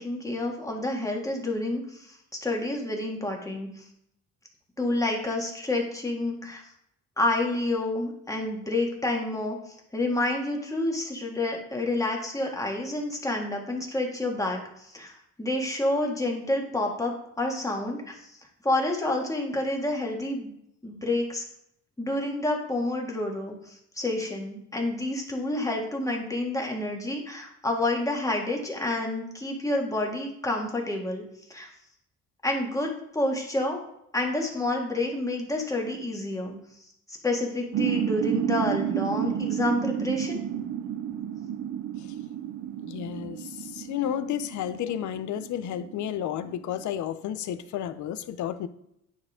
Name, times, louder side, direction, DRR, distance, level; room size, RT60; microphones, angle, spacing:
voice 1, 0.0-3.7 4.8-6.6 7.2-9.6 9.9-15.1 15.4-18.1 18.6-20.5 20.8-21.4 22.0-31.2 31.5-31.7 32.4-33.8 34.1-36.6 37.2-40.4, left 2 dB, 10° left, 0 dB, 1.8 m, -29 dB
sound 1, 37.7-47.0, right 10 dB, 65° right, 0.5 m, -31 dB
voice 2, 42.8-48.7, left 10 dB, 70° left, 12 dB, 0.6 m, -32 dB
9.5 x 4.4 x 3.6 m, 0.77 s
cardioid pair, 90°, 30 cm